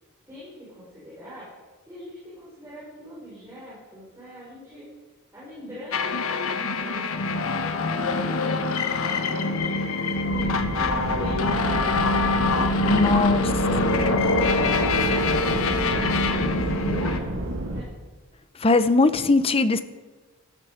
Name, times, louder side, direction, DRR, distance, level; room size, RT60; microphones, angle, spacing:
voice 1, 0.3-1.5 1.9-4.8 5.3-10.5 11.0-12.6 12.9-13.9 14.7-15.3 15.6-15.9 16.4-17.9, equal, 15° right, -10 dB, 5.5 m, -42 dB
sound 1, 5.9-17.2, left 3 dB, 70° left, 1.0 m, -24 dB
sound 2, 10.1-17.8, right 1 dB, 65° right, 1.8 m, -30 dB
voice 2, 12.8-13.4 18.6-19.8, left 3 dB, 25° left, 12 dB, 0.7 m, -20 dB
13.5 x 13.5 x 5.1 m, 1.3 s
head